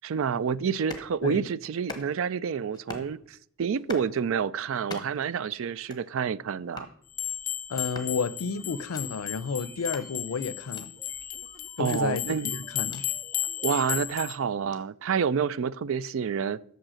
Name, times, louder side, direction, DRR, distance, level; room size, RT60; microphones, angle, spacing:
voice 1, 0.0-6.9 11.8-12.6 13.6-16.6, right 7 dB, 65° right, 0.4 m, -28 dB
sound 1, 0.7-1.1 1.7-2.3 2.7-3.1 3.7-4.1 4.7-5.3 5.7-6.1 6.7-7.0 7.7-8.2 8.7-9.0 9.8-10.1 10.7-10.9 11.8-13.1 13.7-14.0 14.7-14.8, left 3 dB, 20° left, 1.2 m, -43 dB
sound 2, 7.1-14.4, left 12 dB, 40° left, 0.5 m, -34 dB
voice 2, 7.7-10.9 11.8-12.2 12.5-13.0, left 5 dB, 90° left, 0.5 m, -31 dB
sound 3, 8.5-14.4, right 2 dB, 30° right, 0.7 m, -55 dB
8.9 x 6.8 x 6.2 m
head